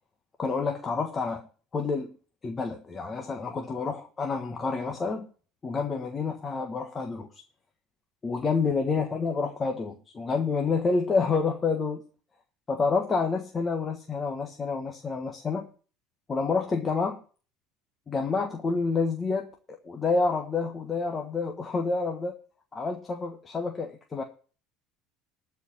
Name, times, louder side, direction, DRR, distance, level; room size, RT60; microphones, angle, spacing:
voice 1, 0.4-1.5 1.7-2.2 2.4-5.3 5.6-7.4 8.2-12.0 12.7-15.7 16.3-17.2 18.1-22.3 22.7-24.2, left 4 dB, 20° left, 4 dB, 1.4 m, -28 dB
12.5 x 4.8 x 8.6 m, 0.38 s
cardioid pair, 135°, 0 cm